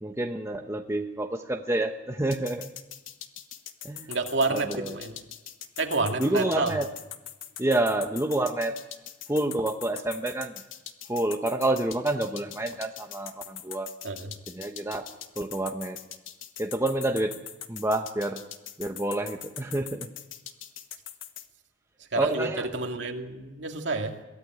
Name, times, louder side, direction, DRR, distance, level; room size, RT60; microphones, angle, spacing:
voice 1, 0.0-2.7 3.8-4.1 4.5-5.0 6.2-6.9 7.6-8.7 9.3-10.5 11.1-13.9 14.5-15.1 15.4-16.0 16.6-17.4 17.7-18.4 18.8-20.1 22.2-22.7, right 1 dB, 15° right, 4 dB, 0.9 m, -28 dB
sound 1, 2.3-21.5, left 10 dB, 90° left, 1.3 m, -42 dB
voice 2, 4.1-5.2 5.8-6.8 14.0-14.3 22.1-24.2, right 3 dB, 65° right, 3 dB, 2.4 m, -29 dB
22.5 x 15.0 x 9.2 m, 1.1 s
head